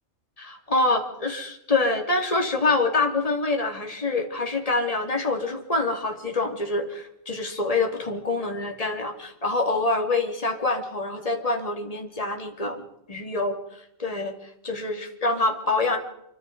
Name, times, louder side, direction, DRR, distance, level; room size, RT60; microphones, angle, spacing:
voice 1, 0.4-12.8 13.1-13.6 14.0-14.3 14.6-16.0, left 3 dB, 30° left, 3 dB, 2.9 m, -26 dB
26.5 x 24.0 x 5.3 m, 0.77 s
omnidirectional pair, 1.3 m